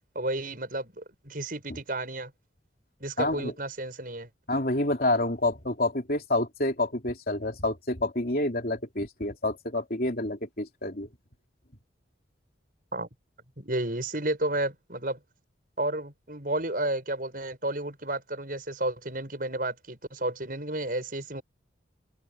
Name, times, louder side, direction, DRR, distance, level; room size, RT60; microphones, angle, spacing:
voice 1, 0.2-2.3 3.0-4.3 12.9-13.1 13.6-15.2 15.8-21.4, right 1 dB, 45° right, 7.2 m, -32 dB
voice 2, 3.2-3.5 4.5-11.1, left 2 dB, 50° left, 3.3 m, -28 dB
open air
head